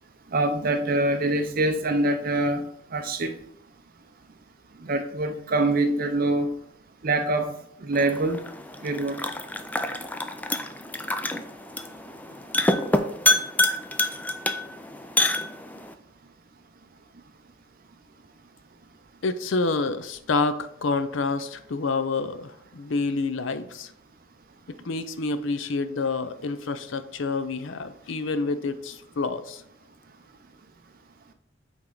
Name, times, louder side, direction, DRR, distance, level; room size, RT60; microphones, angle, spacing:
voice 1, 0.3-2.6 2.9-3.3 4.8-6.5 7.0-8.4 8.8-9.2, right 2 dB, 50° right, 7 dB, 0.6 m, -24 dB
sound 1, 7.9-15.9, left 2 dB, 10° left, 0.4 m, -27 dB
voice 2, 19.2-23.9 24.8-29.6, left 3 dB, 80° left, 12 dB, 0.6 m, -28 dB
8.7 x 3.6 x 3.9 m, 0.73 s
head